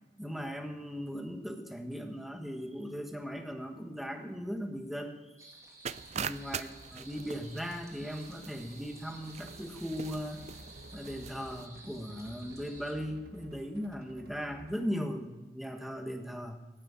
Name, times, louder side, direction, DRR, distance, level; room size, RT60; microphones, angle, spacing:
voice 1, 0.2-5.2 6.1-10.4 10.9-16.6, equal, ahead, 4 dB, 1.4 m, -38 dB
sound 1, 5.4-12.9, right 2 dB, 20° right, 2.5 m, -53 dB
sound 2, 5.9-11.7, right 7 dB, 40° right, 0.4 m, -43 dB
sound 3, 9.4-14.9, right 1 dB, 65° right, 1.3 m, -53 dB
15.5 x 9.0 x 8.6 m, 1.1 s
head